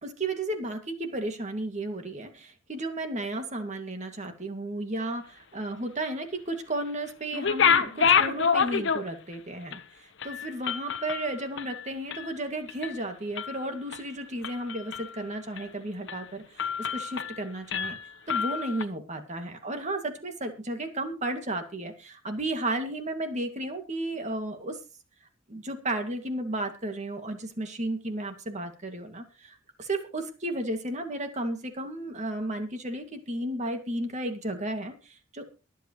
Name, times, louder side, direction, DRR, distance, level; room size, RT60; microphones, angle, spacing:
voice 1, 0.0-5.2 5.5-18.0 18.3-24.8 25.5-35.5, right 1 dB, 35° right, 6 dB, 2.2 m, -33 dB
sound 1, 7.3-9.3 9.7-9.8 10.2-12.4 12.7-13.0 13.4-14.0 14.4-15.2 15.6-15.7 16.1-16.3 16.6-17.4 17.7-18.8, left 7 dB, 65° left, 1.0 m, -27 dB
23.0 x 8.3 x 3.1 m, 0.32 s
head